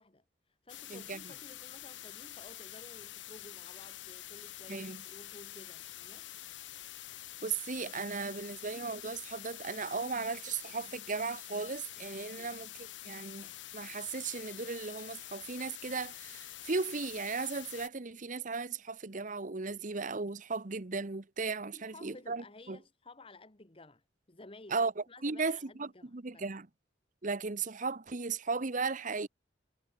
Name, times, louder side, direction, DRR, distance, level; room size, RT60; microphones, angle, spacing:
voice 1, 0.0-6.3 12.3-12.6 21.7-24.0 24.3-26.5, left 2 dB, 30° left, 1.5 m, -54 dB
sound 1, 0.7-17.9, left 14 dB, 80° left, 1.2 m, -47 dB
voice 2, 0.9-1.2 4.7-5.0 7.4-13.5 13.7-22.8 24.7-26.7 27.2-29.3, right 4 dB, 45° right, 1.0 m, -36 dB
head